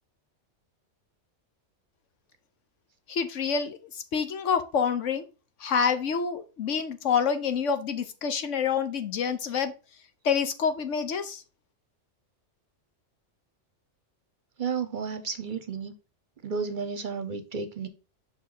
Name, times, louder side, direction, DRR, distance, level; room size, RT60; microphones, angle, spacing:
voice 1, 3.1-5.2 5.6-9.7 10.2-11.4, left 6 dB, 85° left, 1.3 m, -27 dB
voice 2, 14.6-15.9 16.4-17.9, right 5 dB, 45° right, 0.8 m, -32 dB
6.4 x 4.8 x 3.9 m
omnidirectional pair, 1.2 m